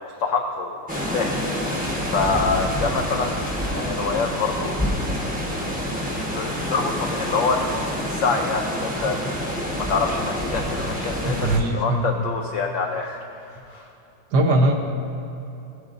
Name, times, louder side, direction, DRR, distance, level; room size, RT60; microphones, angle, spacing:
voice 1, 0.0-1.3 2.0-4.9 5.2-5.7 6.1-7.7 8.1-9.2 9.4-13.9, left 4 dB, 90° left, 2 dB, 0.6 m, -26 dB
sound 1, 0.9-11.6, equal, 5° right, 0.8 m, -27 dB
voice 2, 11.2-12.2 14.3-14.7, right 1 dB, 65° right, 2 dB, 1.4 m, -20 dB
16.5 x 7.9 x 2.5 m, 2.9 s
omnidirectional pair, 2.0 m